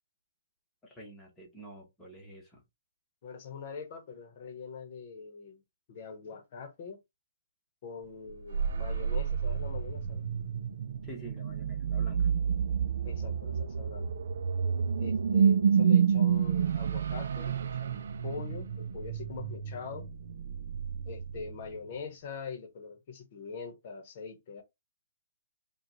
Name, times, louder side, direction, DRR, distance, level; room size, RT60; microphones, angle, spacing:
voice 1, 0.8-2.6 11.0-12.3, right 1 dB, 5° left, 1.1 m, -48 dB
voice 2, 3.2-5.6 5.9-7.0 7.8-10.3 13.0-14.1 15.0-20.1 21.0-24.6, left 5 dB, 35° left, 1.0 m, -43 dB
sound 1, 8.3-21.8, right 7 dB, 55° right, 0.4 m, -29 dB
5.0 x 2.3 x 3.0 m
hypercardioid pair, 175°, 0 cm